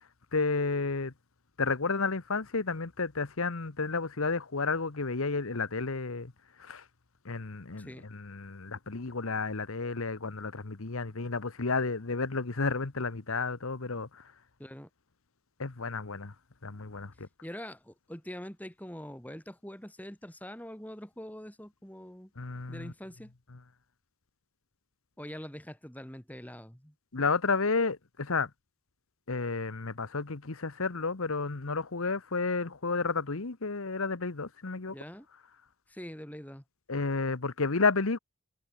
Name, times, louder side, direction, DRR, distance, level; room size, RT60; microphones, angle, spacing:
voice 1, 0.3-1.1 1.6-6.3 6.6-6.8 7.2-14.2 15.6-16.3 16.6-17.3 22.4-22.9 27.1-28.5 29.3-34.9 36.9-38.2, left 4 dB, 75° left, 1.2 m, -31 dB
voice 2, 17.4-22.3 22.7-23.3 25.2-26.9 34.9-35.3 35.9-36.6, equal, 5° left, 2.3 m, -44 dB
head